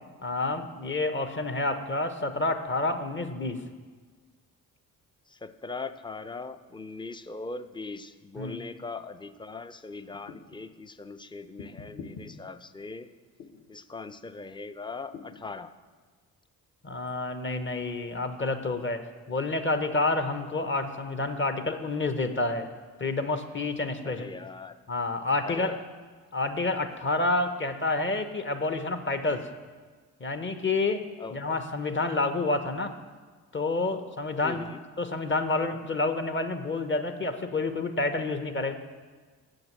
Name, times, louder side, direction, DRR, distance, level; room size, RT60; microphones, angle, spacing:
voice 1, 0.2-3.6 8.4-8.6 16.8-22.7 23.0-24.3 24.9-25.7 26.3-29.4 30.2-31.0 31.3-32.9 33.5-34.6 35.0-38.7, left 2 dB, 30° left, 8 dB, 1.1 m, -29 dB
voice 2, 5.3-13.1 13.7-15.7 24.0-24.8 25.4-25.8 31.2-31.6 34.4-34.8, left 3 dB, 10° left, 11 dB, 0.6 m, -40 dB
sound 1, 10.1-10.6 11.6-12.3 13.4-13.7 15.1-15.4, left 5 dB, 45° left, 1.4 m, -44 dB
7.8 x 6.4 x 7.5 m, 1.5 s
supercardioid pair, 60°, 38 cm